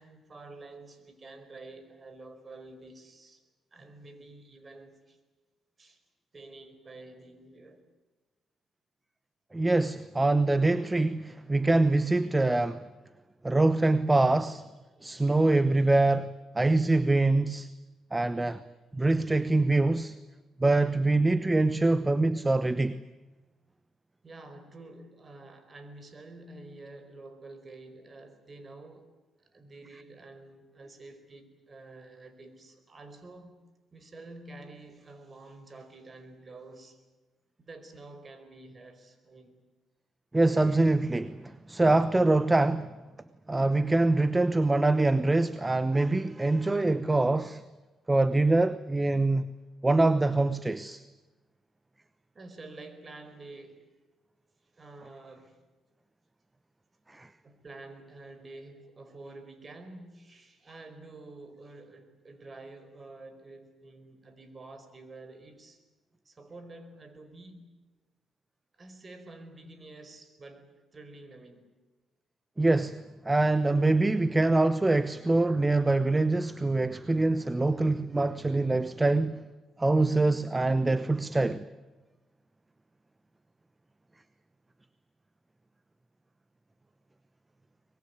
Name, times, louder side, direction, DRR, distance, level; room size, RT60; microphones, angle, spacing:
voice 1, 0.0-3.4 3.7-5.2 5.8-6.0 6.3-7.8 16.8-16.9 24.2-29.1 29.4-33.6 33.9-37.0 37.6-39.6 47.9-48.0 52.3-54.0 54.6-55.6 57.4-65.8 66.2-67.6 68.8-71.7, right 2 dB, 30° right, 4.7 m, -49 dB
voice 2, 9.5-12.8 13.4-14.7 15.0-17.7 18.1-18.6 18.9-20.2 20.6-23.0 40.3-42.9 43.5-47.6 48.1-49.5 49.8-51.0 57.1-57.3 72.6-79.4 79.8-81.6, right 2 dB, 15° right, 0.9 m, -24 dB
24.0 x 21.5 x 9.5 m
cardioid pair, 90°, 0 cm